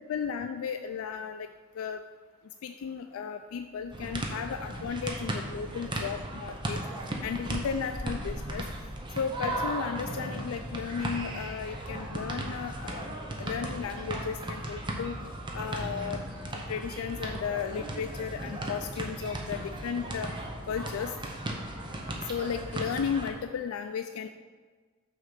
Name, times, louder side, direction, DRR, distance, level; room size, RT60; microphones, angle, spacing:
voice 1, 0.1-1.5 1.8-2.0 2.6-6.8 7.2-8.7 9.2-15.2 15.5-16.2 16.5-20.3 20.7-21.1 22.3-24.3, left 6 dB, 90° left, 7 dB, 0.3 m, -34 dB
sound 1, 3.9-23.3, right 1 dB, 25° right, 0.7 m, -36 dB
6.3 x 3.7 x 5.9 m, 1.5 s
head